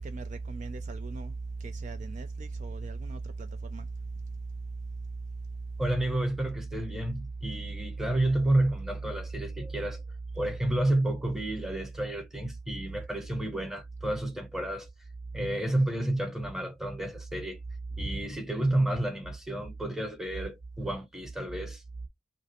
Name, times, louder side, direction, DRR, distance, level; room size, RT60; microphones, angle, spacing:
voice 1, 0.0-1.3 1.6-3.9, right 3 dB, 40° right, 0.4 m, -37 dB
voice 2, 5.8-10.0 10.3-14.9 15.3-17.6 17.9-21.8, right 1 dB, ahead, 0.9 m, -30 dB
5.1 x 2.0 x 3.0 m
head